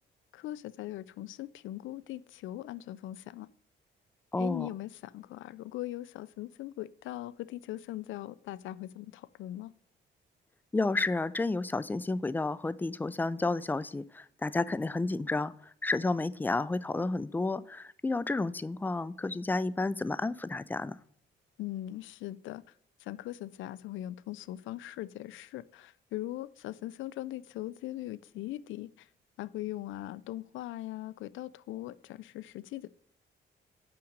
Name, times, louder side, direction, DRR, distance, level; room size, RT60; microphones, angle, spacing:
voice 1, 0.3-3.5 4.4-9.7 21.6-22.6 23.0-29.1 29.4-32.9, left 15 dB, 75° left, 0.4 m, -40 dB
voice 2, 4.3-4.7 10.7-15.5 15.8-21.0, left 3 dB, 10° left, 0.3 m, -31 dB
5.7 x 5.0 x 6.5 m
cardioid pair, 90°, 20 cm